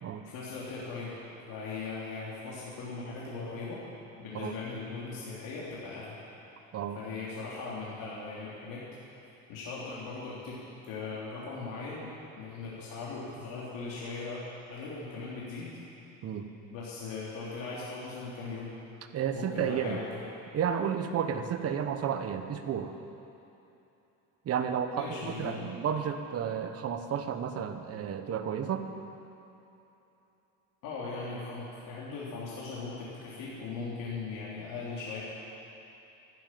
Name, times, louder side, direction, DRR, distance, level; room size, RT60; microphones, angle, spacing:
voice 1, 0.2-1.2 1.5-3.8 4.2-6.2 6.9-8.8 9.1-10.6 10.8-12.1 12.4-15.7 16.7-18.7 19.3-20.3 24.9-25.7 30.8-35.2, left 4 dB, 65° left, -7 dB, 3.2 m, -39 dB
voice 2, 19.1-20.0 20.5-22.9 24.4-28.9, right 8 dB, 45° right, 7 dB, 1.2 m, -32 dB
12.5 x 10.5 x 9.2 m, 2.9 s
cardioid pair, 120°, 34 cm